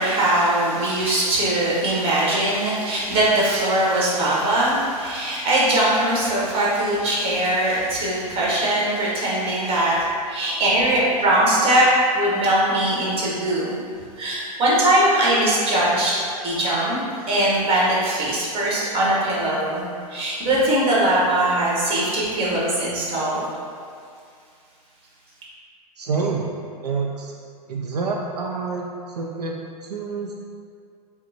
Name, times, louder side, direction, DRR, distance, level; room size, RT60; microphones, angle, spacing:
voice 1, 0.0-11.9 12.1-13.8 14.2-16.1 16.4-17.0 17.3-19.8 20.1-23.5, right 1 dB, 30° right, -6 dB, 1.3 m, -21 dB
voice 2, 26.0-26.5 26.8-27.3 27.7-30.3, right 4 dB, 80° right, -1 dB, 0.4 m, -27 dB
5.7 x 2.2 x 2.8 m, 2.3 s
figure-of-eight pair, 100°, 20 cm